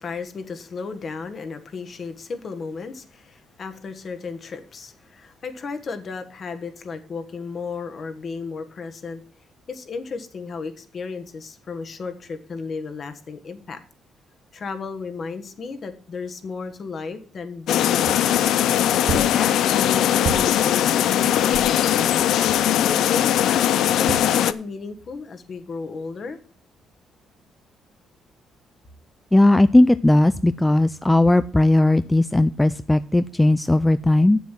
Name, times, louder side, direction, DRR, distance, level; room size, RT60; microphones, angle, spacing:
voice 1, 0.0-9.2 9.7-13.8 14.5-18.6 19.2-22.2 22.8-26.4, left 4 dB, 50° left, 8 dB, 1.5 m, -34 dB
sound 1, 17.7-24.5, left 11 dB, 80° left, 0.5 m, -20 dB
Banging a table, 18.1-18.2 19.1-19.3 20.2-20.5 21.5-21.7 22.5-22.7 24.1-24.3, right 8 dB, 75° right, 0.9 m, -29 dB
voice 2, 29.3-34.4, left 1 dB, 10° left, 13 dB, 0.4 m, -17 dB
7.8 x 7.2 x 7.5 m, 0.42 s
cardioid pair, 90°, 0 cm